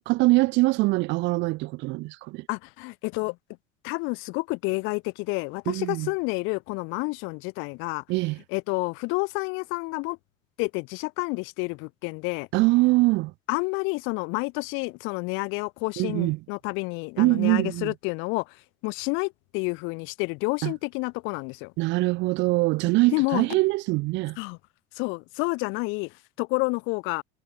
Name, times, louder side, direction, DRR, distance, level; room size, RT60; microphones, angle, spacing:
voice 1, 0.0-2.5 5.7-6.1 8.1-8.4 12.5-13.3 16.0-16.4 17.2-17.9 20.6-20.7 21.8-24.4, right 22 dB, 60° right, 0.5 m, -23 dB
voice 2, 2.5-3.4 3.8-8.0 8.5-10.2 10.6-12.5 13.5-18.6 18.8-21.7 23.1-23.6 24.4-24.6 24.9-27.2, left 29 dB, 75° left, 0.6 m, -29 dB
cardioid pair, 130°, 21 cm